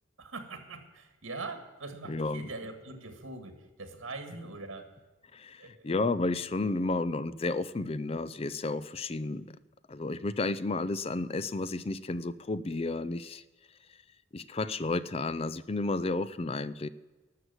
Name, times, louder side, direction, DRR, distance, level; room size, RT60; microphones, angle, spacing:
voice 1, 0.2-4.9 5.6-5.9, right 3 dB, 85° right, 7 dB, 1.9 m, -42 dB
voice 2, 2.1-2.5 5.3-9.6 9.9-13.4 14.3-16.9, left 2 dB, 30° left, 15 dB, 0.4 m, -32 dB
12.5 x 6.7 x 9.4 m, 1.2 s
head